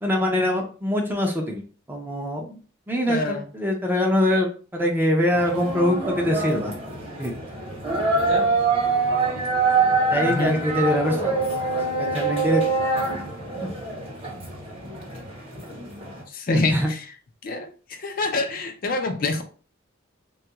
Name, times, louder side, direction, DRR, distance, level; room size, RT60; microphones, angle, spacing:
voice 1, 0.0-1.6 1.9-2.6 2.9-6.7 7.2-7.3 10.1-11.5 12.0-12.6 13.6-13.7 16.5-16.9, left 1 dB, 10° right, 1 dB, 0.5 m, -23 dB
voice 2, 3.1-3.4 10.3-10.6 16.5-16.7 17.4-17.7 18.0-19.4, left 3 dB, 45° left, 5 dB, 0.4 m, -24 dB
sound 1, 5.3-16.2, right 3 dB, 30° right, 0.9 m, -25 dB
3.4 x 2.3 x 2.9 m, 0.39 s
head